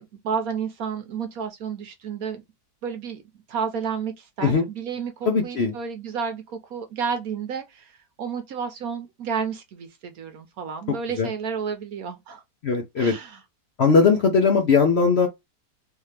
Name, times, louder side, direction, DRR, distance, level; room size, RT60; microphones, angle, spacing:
voice 1, 0.0-2.4 2.8-3.2 3.5-12.4 13.0-13.4, right 6 dB, 65° right, 1.1 m, -31 dB
voice 2, 5.3-5.7 11.2-11.3 12.6-13.1 13.8-15.3, left 5 dB, 55° left, 0.8 m, -19 dB
3.5 x 2.8 x 3.3 m
omnidirectional pair, 1.8 m